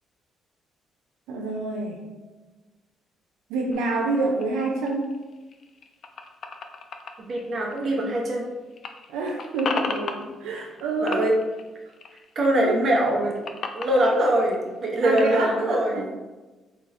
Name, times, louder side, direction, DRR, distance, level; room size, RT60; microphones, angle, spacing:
voice 1, 1.3-2.0 3.5-5.2 9.1-11.2 12.6-12.8 15.0-16.1, right 2 dB, 90° right, -1 dB, 0.4 m, -27 dB
sound 1, 3.7-8.5 8.7-10.8 11.1-12.5 12.8-15.5, left 4 dB, 55° left, 0.4 m, -36 dB
voice 2, 7.3-8.5 11.0-11.3 12.4-13.4 13.7-16.1, right 1 dB, 50° right, 0 dB, 0.9 m, -23 dB
3.9 x 3.0 x 2.5 m, 1.2 s
cardioid pair, 80°, 0 cm